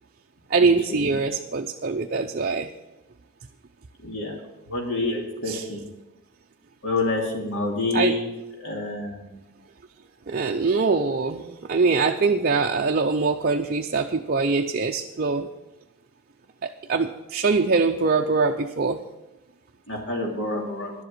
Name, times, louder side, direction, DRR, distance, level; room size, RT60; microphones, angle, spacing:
voice 1, 0.5-2.7 5.5-5.6 7.9-8.2 10.3-15.5 16.6-19.1, right 4 dB, 40° right, 3 dB, 0.5 m, -23 dB
voice 2, 4.0-4.3 4.7-5.8 6.8-8.3 8.6-9.4 19.9-20.9, left 2 dB, 55° left, -1 dB, 2.9 m, -28 dB
11.0 x 7.8 x 7.9 m, 1.0 s
head